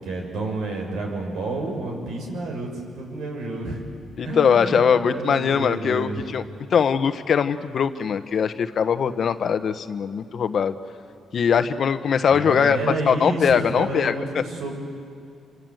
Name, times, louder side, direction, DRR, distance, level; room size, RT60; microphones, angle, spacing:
voice 1, 0.0-3.8 4.2-6.3 12.3-14.7, right 2 dB, 80° right, 2 dB, 6.1 m, -30 dB
voice 2, 4.2-6.4 6.7-10.7 11.3-12.8 13.1-14.1, left 7 dB, 55° left, 10 dB, 1.2 m, -21 dB
27.0 x 25.0 x 8.0 m, 2.3 s
cardioid pair, 90°, 0 cm